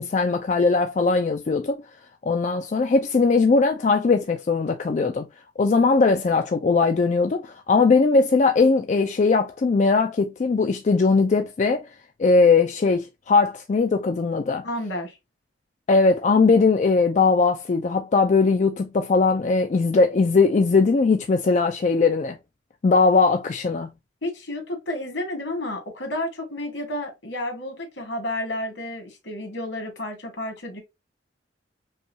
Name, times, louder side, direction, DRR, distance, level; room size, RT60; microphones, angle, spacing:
voice 1, 0.0-1.8 2.2-5.3 5.6-11.8 12.2-14.6 15.9-22.4 22.8-23.9, left 4 dB, 40° left, 0.3 m, -20 dB
voice 2, 14.6-15.2 24.2-30.8, left 1 dB, 75° left, 1.6 m, -31 dB
5.4 x 2.3 x 2.7 m
head